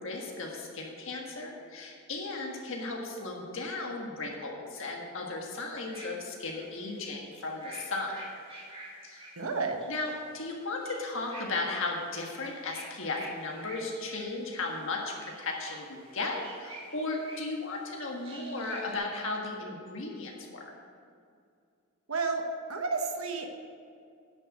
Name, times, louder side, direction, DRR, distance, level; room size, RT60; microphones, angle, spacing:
voice 1, 0.0-8.2 9.0-9.2 9.9-20.6, left 3 dB, 60° left, 0 dB, 1.6 m, -35 dB
sound 1, 5.6-12.0 12.2-14.3 14.9-17.7 18.2-18.9, right 1 dB, 25° right, 2.1 m, -49 dB
voice 2, 9.4-9.8 22.1-22.4 22.7-23.5, right 4 dB, 75° right, 4 dB, 1.1 m, -31 dB
10.0 x 6.6 x 7.8 m, 2.3 s
head